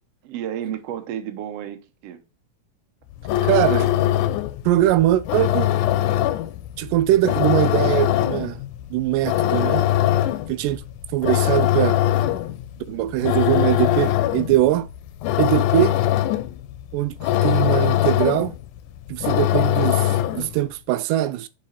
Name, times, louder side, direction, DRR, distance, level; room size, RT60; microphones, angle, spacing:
voice 1, 0.2-2.2 3.3-3.5, right 10 dB, 65° right, 1.7 m, -32 dB
sound 1, 3.1-20.6, left 13 dB, 80° left, 2.0 m, -22 dB
voice 2, 3.4-3.9 4.7-5.7 6.8-8.6 8.9-9.9 10.5-10.8 11.1-12.0 12.9-14.9 15.4-16.0 16.9-18.5 19.1-21.5, right 14 dB, 85° right, 2.1 m, -21 dB
5.6 x 5.0 x 4.2 m
omnidirectional pair, 3.7 m